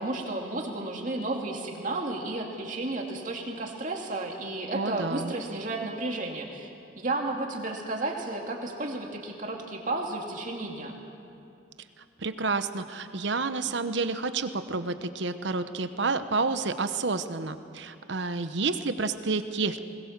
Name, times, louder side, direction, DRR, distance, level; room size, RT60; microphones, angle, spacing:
voice 1, 0.0-11.0, right 2 dB, 40° right, 1 dB, 2.5 m, -33 dB
voice 2, 4.7-5.3 12.2-19.8, right 3 dB, 70° right, 10 dB, 1.0 m, -29 dB
20.5 x 20.5 x 7.4 m, 2.6 s
head